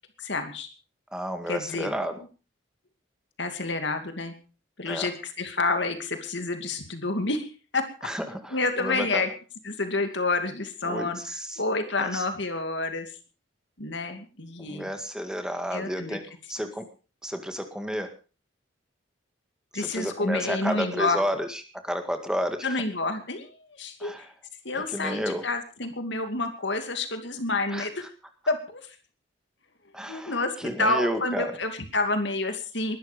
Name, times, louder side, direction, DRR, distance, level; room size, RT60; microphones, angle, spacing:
voice 1, 0.2-0.7 1.5-1.9 3.4-4.3 4.8-7.9 8.5-9.3 9.6-11.2 11.6-13.1 13.8-14.9 15.7-16.2 19.7-21.2 22.6-24.3 24.6-28.0 28.5-29.0 30.1-33.0, left 3 dB, 60° left, 7 dB, 2.5 m, -29 dB
voice 2, 1.1-2.2 4.9-5.1 8.0-9.2 10.8-11.6 12.0-12.3 14.6-16.2 16.5-16.8 17.2-18.1 19.7-22.8 24.0-24.3 24.7-25.4 27.7-27.9 29.9-31.5, equal, 5° right, 7 dB, 1.9 m, -31 dB
21.0 x 12.0 x 5.2 m, 0.36 s
head